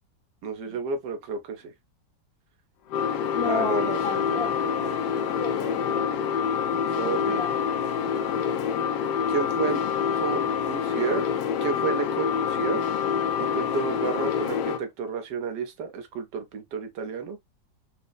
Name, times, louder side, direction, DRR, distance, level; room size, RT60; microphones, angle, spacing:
voice 1, 0.4-1.7 3.4-5.0 6.9-7.5 9.3-9.8 10.1-11.3 11.6-12.8 13.4-17.4, right 5 dB, 80° right, 1.4 m, -31 dB
sound 1, 2.9-14.8, left 7 dB, 80° left, 1.2 m, -26 dB
voice 2, 3.3-4.9 5.4-6.2 7.0-8.1, left 4 dB, 45° left, 0.8 m, -34 dB
5.2 x 2.0 x 2.2 m
omnidirectional pair, 1.8 m